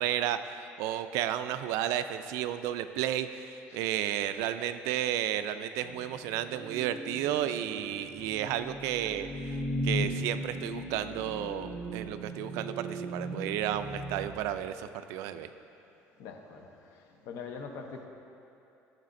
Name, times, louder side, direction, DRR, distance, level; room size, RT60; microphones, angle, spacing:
voice 1, 0.0-15.5, right 11 dB, 80° right, 11 dB, 0.3 m, -32 dB
sound 1, 5.8-14.3, equal, 5° right, 0.6 m, -37 dB
voice 2, 16.2-18.1, left 5 dB, 65° left, 4 dB, 0.7 m, -43 dB
13.0 x 6.4 x 2.6 m, 2.8 s
cardioid pair, 180°, 5 cm